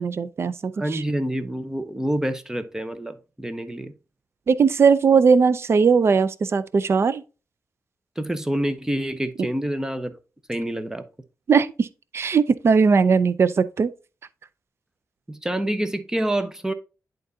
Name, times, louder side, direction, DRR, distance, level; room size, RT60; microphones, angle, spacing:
voice 1, 0.0-1.0 4.5-7.2 11.5-11.9 12.1-13.9, right 5 dB, 50° right, 0.5 m, -19 dB
voice 2, 0.8-3.9 8.2-10.1 10.5-11.1 15.3-16.7, right 1 dB, 10° right, 0.7 m, -27 dB
11.0 x 3.9 x 2.7 m
wide cardioid pair, 120°, 6 cm